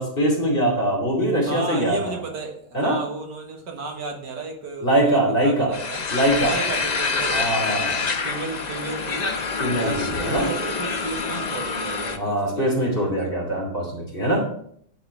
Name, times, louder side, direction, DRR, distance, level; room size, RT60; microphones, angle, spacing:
voice 1, 0.0-2.0 2.7-3.0 4.8-5.7 6.1-6.5 7.3-8.1 9.6-10.4 12.2-14.4, right 1 dB, 30° left, -2 dB, 2.9 m, -22 dB
voice 2, 1.5-6.0 6.4-7.9 8.2-9.4 9.8-13.3, right 4 dB, 75° right, 1 dB, 2.1 m, -33 dB
sound 1, 5.7-12.2, left 4 dB, 55° left, 0.4 m, -27 dB
10.5 x 5.0 x 4.7 m, 0.64 s
omnidirectional pair, 1.9 m